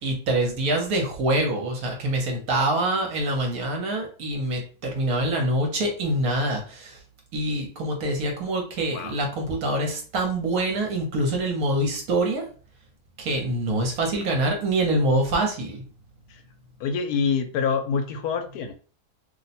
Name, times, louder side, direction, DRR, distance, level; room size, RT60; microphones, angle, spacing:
voice 1, 0.0-7.0 7.3-12.4 13.2-15.8, right 1 dB, 70° right, 1 dB, 1.2 m, -25 dB
voice 2, 16.8-18.7, left 6 dB, 80° left, 7 dB, 1.1 m, -26 dB
2.8 x 2.1 x 4.1 m, 0.40 s
omnidirectional pair, 1.6 m